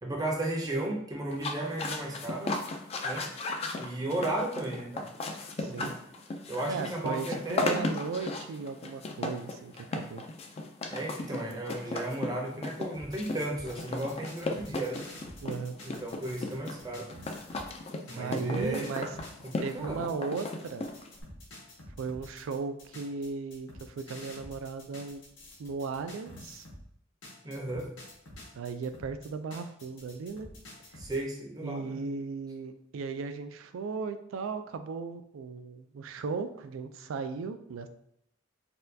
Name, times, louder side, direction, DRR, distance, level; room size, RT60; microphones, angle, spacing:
voice 1, 0.0-2.6 3.0-3.3 3.8-5.1 5.6-5.9 6.5-7.9 10.9-15.0 15.8-17.1 18.1-18.9 19.4-20.0 27.4-27.9 31.0-32.0, right 1 dB, 20° right, 0 dB, 0.6 m, -34 dB
sound 1, 1.3-21.2, left 2 dB, 30° left, 0.3 m, -36 dB
voice 2, 5.6-6.0 6.7-10.2 15.4-15.8 18.2-19.1 19.6-20.9 22.0-25.2 25.6-26.7 28.5-30.5 31.6-37.9, right 4 dB, 80° right, 9 dB, 0.3 m, -36 dB
sound 2, 12.9-17.7 18.1-26.9 27.2-31.2, left 1 dB, 65° left, 0.9 m, -49 dB
4.2 x 2.2 x 2.6 m, 0.73 s
head